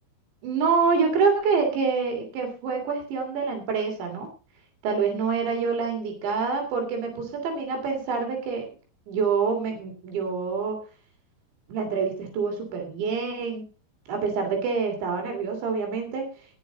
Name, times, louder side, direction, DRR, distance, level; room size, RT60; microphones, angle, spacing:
voice 1, 0.4-4.3 4.8-8.7 9.1-10.8 11.7-13.6 14.1-16.3, right 5 dB, 80° right, 3 dB, 5.3 m, -26 dB
20.0 x 6.9 x 3.9 m, 0.36 s
omnidirectional pair, 5.1 m